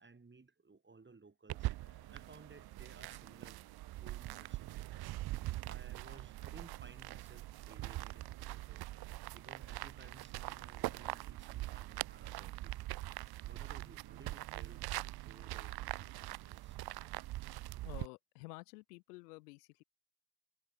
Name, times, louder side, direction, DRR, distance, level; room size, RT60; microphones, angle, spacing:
voice 1, 0.0-3.6 4.0-5.1 5.7-8.9 9.3-12.7 13.5-14.8 15.3-16.8, right 4 dB, 25° right, 5.1 m, -59 dB
sound 1, 1.5-18.1, right 17 dB, 55° right, 0.7 m, -43 dB
sound 2, 1.8-10.2, left 5 dB, 35° left, 4.1 m, -77 dB
voice 2, 17.8-19.8, left 24 dB, 90° left, 0.7 m, -51 dB
hypercardioid pair, 60°, 45 cm